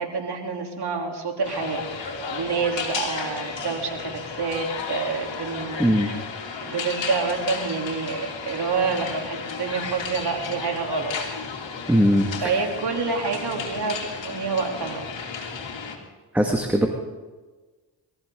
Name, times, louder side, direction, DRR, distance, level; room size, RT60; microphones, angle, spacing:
voice 1, 0.0-5.8 6.6-11.1 12.4-15.1, right 4 dB, 60° right, 1 dB, 3.5 m, -28 dB
sound 1, 1.4-16.0, left 5 dB, 70° left, 3.2 m, -33 dB
voice 2, 5.8-6.1 11.9-12.3 12.6-12.7 16.3-16.9, equal, 5° right, 1 dB, 2.2 m, -20 dB
22.5 x 15.0 x 3.9 m, 1.3 s
cardioid pair, 55°, 45 cm